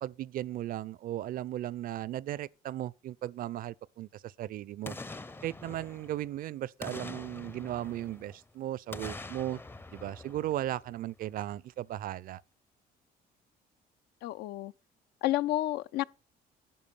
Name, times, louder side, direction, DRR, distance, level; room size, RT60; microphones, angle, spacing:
voice 1, 0.0-5.0 5.4-9.6 9.9-12.4, right 13 dB, 55° right, 0.4 m, -36 dB
Boom, 4.8-6.4 6.8-8.4 8.9-11.2 11.5-11.6, left 2 dB, 15° left, 0.5 m, -45 dB
voice 2, 14.2-14.7 15.2-16.0, left 15 dB, 80° left, 0.5 m, -30 dB
11.0 x 4.6 x 7.0 m
cardioid pair, 110°, 17 cm